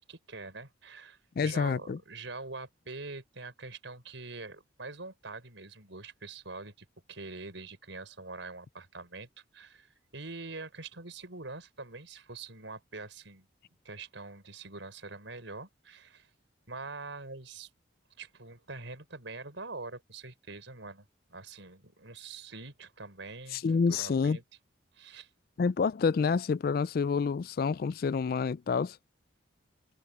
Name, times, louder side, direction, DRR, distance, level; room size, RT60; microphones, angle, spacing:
voice 1, 0.0-13.5 13.8-16.3 16.7-17.7 18.2-23.6 23.9-24.4 24.9-25.3, right 3 dB, 70° right, 4.7 m, -44 dB
voice 2, 1.4-2.0 23.5-24.4 25.6-29.0, left 5 dB, 50° left, 0.3 m, -28 dB
head